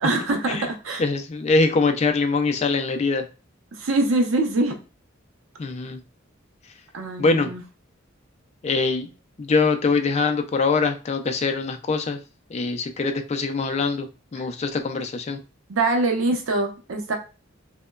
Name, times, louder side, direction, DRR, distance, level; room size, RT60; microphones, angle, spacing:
voice 1, 0.0-1.0 3.7-4.7 6.9-7.6 14.4-14.5 15.7-17.2, right 2 dB, 85° right, 0.6 m, -24 dB
voice 2, 1.0-3.3 5.6-6.0 7.2-7.5 8.6-12.2 12.5-15.4, left 4 dB, 35° left, 0.3 m, -23 dB
2.9 x 2.1 x 2.2 m
head